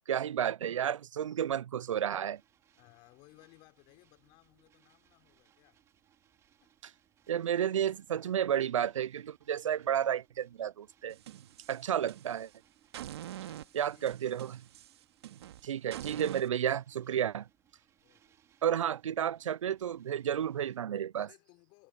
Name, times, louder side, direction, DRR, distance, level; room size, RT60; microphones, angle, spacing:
voice 1, 0.1-2.4 7.3-11.2 11.7-12.5 13.7-14.6 15.6-17.5 18.6-21.3, right 9 dB, 80° right, 0.5 m, -31 dB
sound 1, 1.8-20.8, right 10 dB, 15° right, 3.7 m, -69 dB
voice 2, 2.7-5.8 6.6-6.7 11.8-12.0 13.4-14.4 15.3-15.4 17.3-17.5 18.0-18.7 21.2-21.9, left 24 dB, 30° left, 5.7 m, -62 dB
sound 2, 11.1-12.5 12.9-16.5, right 12 dB, 55° right, 2.2 m, -45 dB
hypercardioid pair, 150°, 16 cm